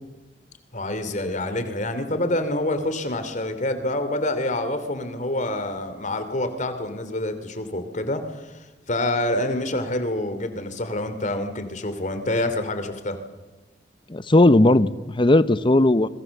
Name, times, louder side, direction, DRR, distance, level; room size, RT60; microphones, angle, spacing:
voice 1, 0.7-13.2, left 1 dB, 45° left, 9 dB, 2.8 m, -27 dB
voice 2, 14.1-16.1, left 1 dB, 30° left, 15 dB, 0.8 m, -17 dB
28.0 x 22.0 x 7.2 m, 1.1 s
head